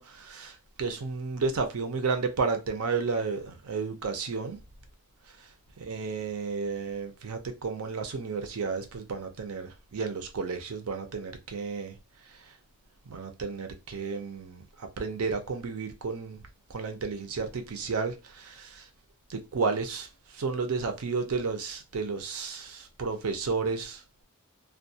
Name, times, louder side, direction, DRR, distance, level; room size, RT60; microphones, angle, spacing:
voice 1, 0.0-4.6 5.3-5.4 5.8-12.0 12.2-12.6 13.1-18.9 19.3-24.0, right 4 dB, 70° right, 0.5 m, -32 dB
2.3 x 2.2 x 2.7 m
head